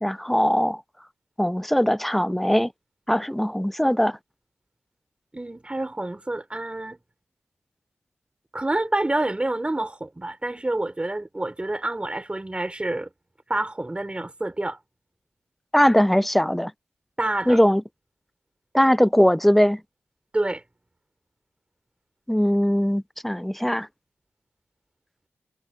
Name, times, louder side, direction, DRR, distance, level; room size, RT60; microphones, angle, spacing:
voice 1, 0.0-0.8 1.4-2.7 3.1-4.2 15.7-16.7 17.5-17.8 18.7-19.8 22.3-23.9, equal, 5° left, 0.3 m, -20 dB
voice 2, 5.3-7.0 8.5-13.1 13.5-14.8 17.2-17.6 20.3-20.6, right 2 dB, 25° right, 3.4 m, -28 dB
cardioid pair, 55°, 5 cm